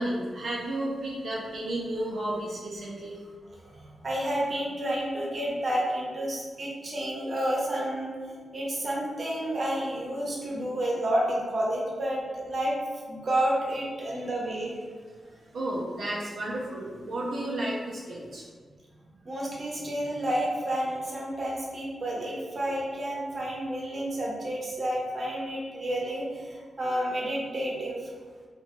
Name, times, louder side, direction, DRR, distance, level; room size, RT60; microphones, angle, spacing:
voice 1, 0.0-3.2 15.2-18.4, right 1 dB, 85° right, -6 dB, 0.5 m, -32 dB
voice 2, 3.6-12.8 13.1-14.8 19.2-28.1, right 1 dB, 45° right, -3 dB, 0.8 m, -30 dB
2.9 x 2.2 x 2.9 m, 1.6 s
cardioid pair, 75°, 0 cm